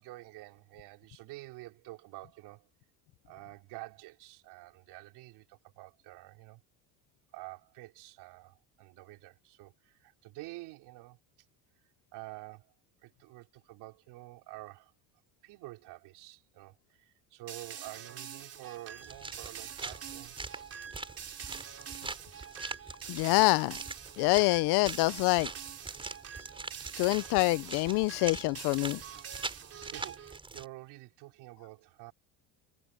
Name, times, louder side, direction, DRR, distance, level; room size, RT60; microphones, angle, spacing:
voice 1, 0.0-2.7 3.3-6.6 7.3-11.2 12.1-12.7 13.0-14.9 15.4-20.4 29.7-32.1, right 19 dB, 70° right, 3.4 m, -49 dB
sound 1, 17.5-30.4, right 8 dB, 35° right, 4.0 m, -45 dB
sound 2, 19.0-30.6, right 3 dB, 10° right, 5.4 m, -43 dB
voice 2, 23.1-23.8 24.2-25.5 27.0-29.0, left 24 dB, 65° left, 0.5 m, -26 dB
cardioid pair, 155°, 41 cm